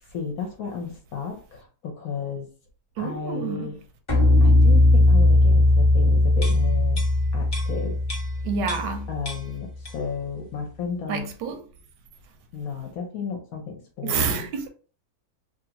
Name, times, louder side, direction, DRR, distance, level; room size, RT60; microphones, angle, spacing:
voice 1, 0.1-2.5 3.0-3.8 4.4-7.0 7.3-8.0 9.1-11.3 12.5-14.5, left 5 dB, 65° left, 1.0 m, -33 dB
voice 2, 3.0-3.7 8.4-9.1 11.1-11.6 14.0-14.7, right 5 dB, 85° right, 1.2 m, -28 dB
sound 1, 4.1-9.3, left 2 dB, 25° left, 0.7 m, -18 dB
sound 2, 6.3-9.0 9.2-10.2 10.5-10.7, left 1 dB, 50° left, 0.4 m, -39 dB
3.1 x 2.5 x 2.8 m
omnidirectional pair, 1.9 m